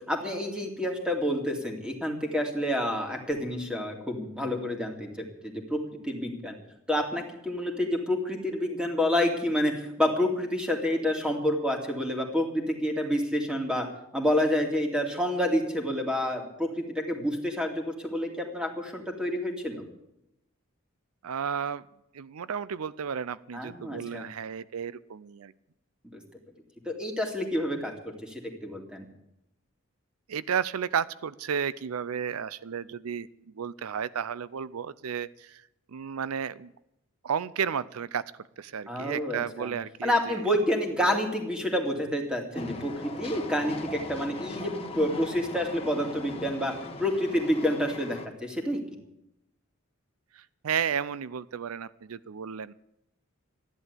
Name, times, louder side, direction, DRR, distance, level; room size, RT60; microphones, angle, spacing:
voice 1, 0.0-6.6 6.9-13.9 14.1-19.8 23.5-24.3 26.1-26.2 26.9-27.9 28.2-29.0 38.9-39.7 40.0-46.7 47.0-48.8, left 1 dB, 5° right, 2 dB, 2.5 m, -28 dB
voice 2, 21.2-21.9 22.1-25.5 30.3-33.3 33.5-35.6 35.9-36.7 37.2-38.2 38.6-40.4 50.3-52.7, right 7 dB, 85° right, 18 dB, 0.5 m, -33 dB
Train, 42.5-48.3, left 2 dB, 25° left, 1.4 m, -39 dB
14.0 x 11.0 x 8.3 m, 0.85 s
head